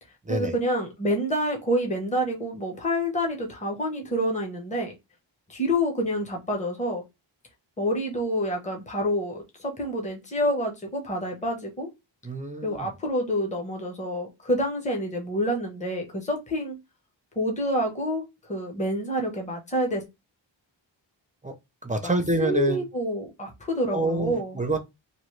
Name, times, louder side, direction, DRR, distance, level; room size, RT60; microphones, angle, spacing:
voice 1, 0.3-4.9 5.5-7.0 7.8-11.9 12.6-16.8 17.4-20.0 22.4-24.6, equal, 15° left, 0.9 m, -28 dB
voice 2, 12.2-12.9 21.4-21.6 21.8-22.8 23.9-24.8, right 2 dB, 15° right, 0.5 m, -27 dB
3.0 x 2.7 x 3.1 m
wide cardioid pair, 125°, 46 cm